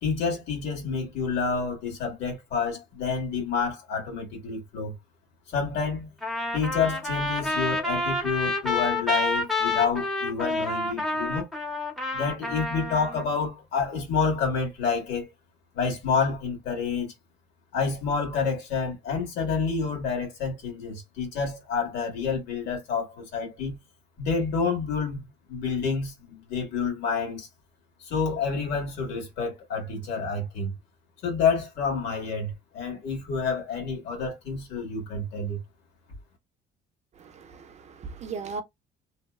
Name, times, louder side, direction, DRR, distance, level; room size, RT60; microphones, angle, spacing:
voice 1, 0.0-4.9 5.5-6.1 6.5-11.5 12.1-15.3 15.7-17.1 17.7-23.8 24.2-27.5 28.0-30.7 31.2-35.6, left 5 dB, 90° left, 1.4 m, -28 dB
Trumpet, 6.2-13.2, left 2 dB, ahead, 0.8 m, -28 dB
voice 2, 37.2-38.6, right 4 dB, 40° right, 0.5 m, -37 dB
2.8 x 2.0 x 2.3 m
cardioid pair, 110°, 17 cm